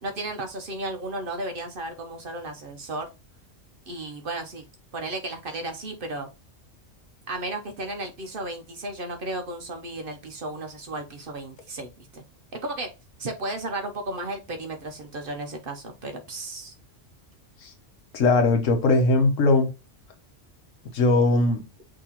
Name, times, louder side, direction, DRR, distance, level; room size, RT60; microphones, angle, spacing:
voice 1, 0.0-3.1 3.9-4.6 4.9-6.3 7.3-12.2 12.5-12.9 13.2-16.7, right 2 dB, 50° right, 0.8 m, -34 dB
voice 2, 18.1-19.7 20.9-21.6, left 2 dB, 80° left, 1.3 m, -20 dB
6.1 x 2.9 x 2.9 m
omnidirectional pair, 1.3 m